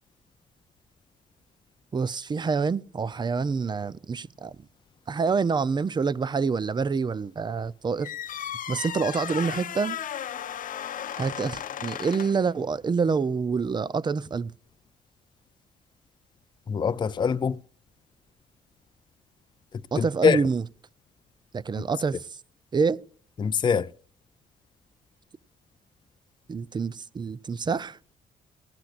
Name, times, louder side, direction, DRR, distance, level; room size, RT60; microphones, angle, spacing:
voice 1, 1.9-4.6 5.1-10.0 11.2-14.5 19.9-20.6 21.5-22.3 22.7-23.0 26.5-28.0, right 5 dB, 30° right, 0.5 m, -27 dB
sound 1, 8.0-12.5, left 9 dB, 60° left, 0.8 m, -35 dB
voice 2, 16.7-17.6 20.0-20.4 23.4-23.9, left 6 dB, 30° left, 0.5 m, -23 dB
18.5 x 11.5 x 2.5 m
supercardioid pair, 75°, 16 cm